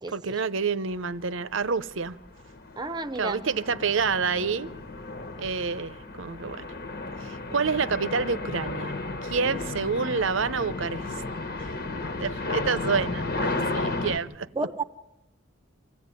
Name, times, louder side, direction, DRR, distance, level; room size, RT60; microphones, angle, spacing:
voice 1, 0.1-2.2 3.2-4.7 5.4-6.6 7.2-8.9 9.2-11.2 11.6-11.8 12.2-14.7, right 5 dB, 70° right, 0.8 m, -28 dB
sound 1, 1.2-1.4 1.9-14.2, left 2 dB, 50° left, 1.4 m, -33 dB
voice 2, 2.8-3.4 14.6-14.8, right 3 dB, 20° right, 0.7 m, -30 dB
25.0 x 16.0 x 9.7 m
head